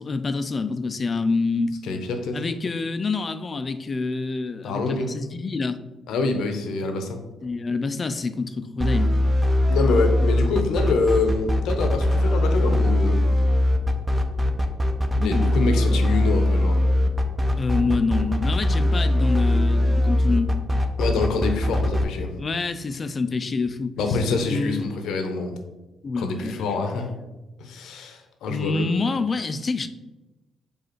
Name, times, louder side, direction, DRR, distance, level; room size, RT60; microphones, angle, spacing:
voice 1, 0.0-1.8 2.3-5.8 7.4-9.2 15.2-15.6 17.6-20.6 22.4-24.2 24.5-24.9 26.0-26.7 27.1-27.2 28.5-29.9, left 4 dB, 35° left, 11 dB, 0.3 m, -27 dB
voice 2, 1.9-2.4 4.6-5.1 6.1-7.2 9.7-13.2 15.2-16.8 21.0-22.3 24.0-25.6 26.2-27.1 27.6-28.8, left 3 dB, 80° left, 6 dB, 0.6 m, -25 dB
sound 1, 8.8-22.0, left 1 dB, 15° right, 0.5 m, -21 dB
4.8 x 2.4 x 4.4 m, 1.1 s
cardioid pair, 90°, 0 cm